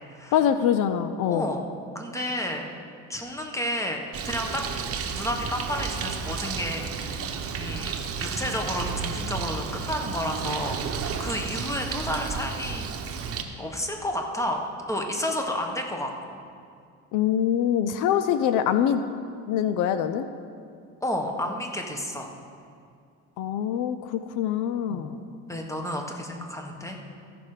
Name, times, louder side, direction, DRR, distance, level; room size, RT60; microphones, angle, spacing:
voice 1, 0.3-1.5 17.1-19.0 19.5-20.3 23.4-25.1, left 9 dB, 80° left, 10 dB, 0.5 m, -24 dB
voice 2, 1.3-1.6 1.9-2.7 3.1-4.6 5.1-7.2 7.6-7.9 8.2-12.8 13.6-16.4 21.0-22.3 24.9-25.1 25.5-27.0, left 1 dB, 10° left, 2 dB, 1.3 m, -31 dB
Bird, 4.1-13.4, right 6 dB, 50° right, 0.9 m, -32 dB
14.5 x 6.0 x 4.9 m, 2.3 s
cardioid pair, 95°, 30 cm